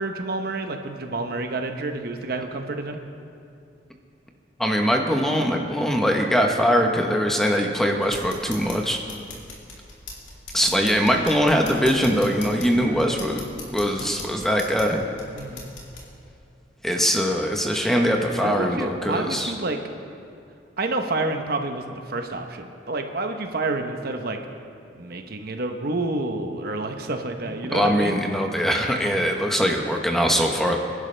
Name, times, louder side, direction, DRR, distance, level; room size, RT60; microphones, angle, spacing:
voice 1, 0.0-3.0 15.3-15.7 18.4-19.8 20.8-24.4 24.9-28.2, right 2 dB, 55° right, 5 dB, 0.9 m, -29 dB
voice 2, 4.6-9.0 10.5-13.4 13.7-15.0 16.8-19.5 27.7-30.8, equal, ahead, 2 dB, 1.0 m, -22 dB
sound 1, 8.0-16.0, left 3 dB, 85° left, 3.0 m, -41 dB
25.5 x 11.0 x 3.4 m, 2.5 s
head